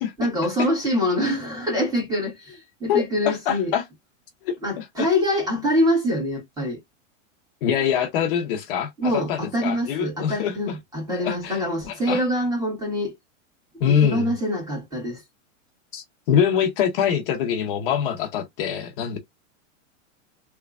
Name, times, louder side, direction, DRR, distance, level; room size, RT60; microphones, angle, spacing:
voice 1, 0.2-3.7 4.6-6.8 9.0-13.1 13.9-15.2, equal, 10° right, 1.6 m, -25 dB
voice 2, 2.9-3.8 4.4-5.1 7.6-10.6 11.1-12.2 13.8-14.3 15.9-19.2, left 8 dB, 45° left, 0.9 m, -24 dB
3.5 x 3.1 x 2.4 m
supercardioid pair, 165°, 38 cm